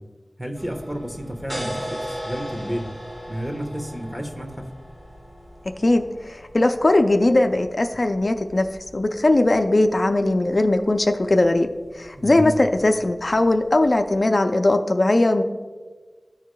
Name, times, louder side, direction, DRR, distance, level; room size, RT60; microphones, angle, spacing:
voice 1, 0.4-2.9 3.3-4.7 12.2-12.5, equal, 15° right, 2 dB, 1.1 m, -31 dB
sound 1, 0.6-14.2, equal, 40° right, 1.9 m, -39 dB
voice 2, 5.8-8.7 8.9-11.7 11.9-15.4, left 2 dB, 55° left, 6 dB, 0.4 m, -19 dB
14.0 x 4.8 x 2.2 m, 1.4 s
wide cardioid pair, 60°, 0 cm